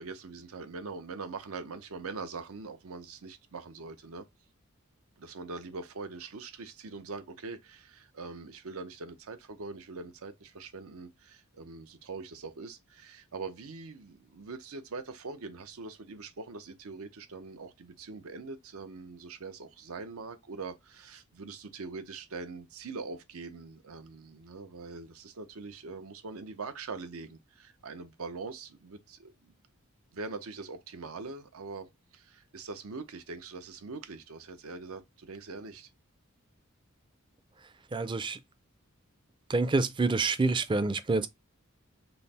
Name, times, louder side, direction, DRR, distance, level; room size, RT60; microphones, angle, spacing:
voice 1, 0.0-4.3 5.2-29.5 30.1-35.9, right 4 dB, 85° right, 0.7 m, -43 dB
voice 2, 37.9-38.4 39.5-41.3, right 3 dB, 20° right, 0.4 m, -27 dB
5.5 x 2.0 x 4.1 m
head